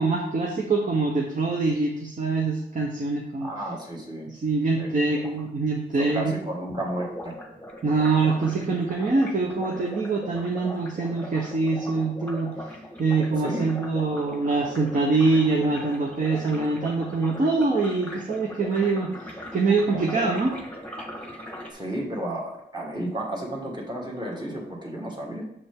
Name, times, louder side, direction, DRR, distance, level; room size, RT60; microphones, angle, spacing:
voice 1, 0.0-3.5 4.3-6.3 7.8-12.5 13.0-20.5, right 3 dB, 45° right, 0 dB, 0.9 m, -24 dB
voice 2, 3.4-4.3 4.8-5.0 6.0-7.4 13.4-13.7 21.7-25.4, right 1 dB, 25° right, -1 dB, 1.7 m, -32 dB
sound 1, 5.1-5.4 6.7-21.7, equal, 10° left, 1.1 m, -39 dB
6.7 x 5.0 x 3.6 m, 0.74 s
wide cardioid pair, 100°, 18 cm